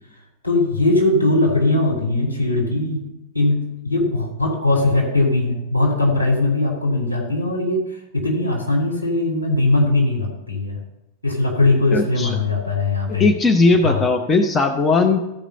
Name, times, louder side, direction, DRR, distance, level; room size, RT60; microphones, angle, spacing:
voice 1, 0.4-3.0 3.3-7.8 8.1-10.8 11.2-13.3 13.8-14.0, left 2 dB, 85° left, -1 dB, 3.0 m, -20 dB
voice 2, 11.9-12.4 13.2-15.2, left 3 dB, 20° left, 6 dB, 0.9 m, -17 dB
14.5 x 5.1 x 5.4 m, 0.93 s
figure-of-eight pair, 90°, 0 cm